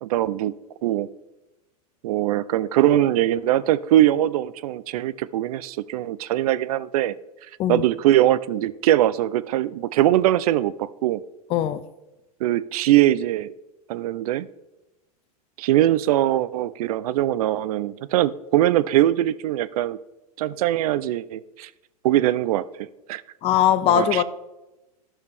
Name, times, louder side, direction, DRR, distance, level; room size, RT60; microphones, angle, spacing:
voice 1, 0.0-0.5 0.8-1.1 2.0-7.1 7.7-11.2 12.4-13.5 13.9-14.5 15.6-20.0 20.4-21.7 22.0-23.2 23.9-24.2, right 13 dB, 65° right, 0.5 m, -21 dB
voice 2, 11.5-11.8 23.4-24.2, left 10 dB, 30° left, 0.5 m, -20 dB
12.0 x 6.5 x 3.4 m
hypercardioid pair, 120°, 20 cm